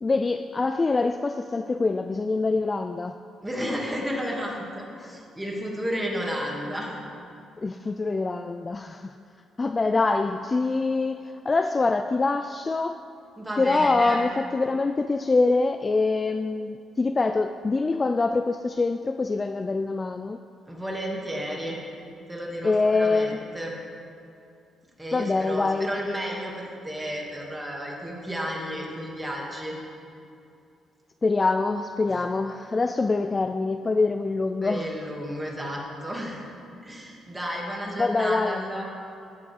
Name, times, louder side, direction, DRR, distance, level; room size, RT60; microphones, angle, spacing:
voice 1, 0.0-3.2 5.0-5.2 7.6-9.2 9.6-13.0 13.6-20.4 22.6-23.4 25.1-25.9 31.2-34.9 38.0-38.6, left 3 dB, 30° left, 8 dB, 0.3 m, -25 dB
voice 2, 3.4-7.0 13.4-14.2 20.7-21.8 22.3-23.7 25.0-29.8 32.1-32.2 34.6-36.4 36.8-38.8, equal, 10° right, -2 dB, 2.6 m, -32 dB
15.5 x 9.7 x 3.7 m, 2.5 s
cardioid pair, 90°, 0 cm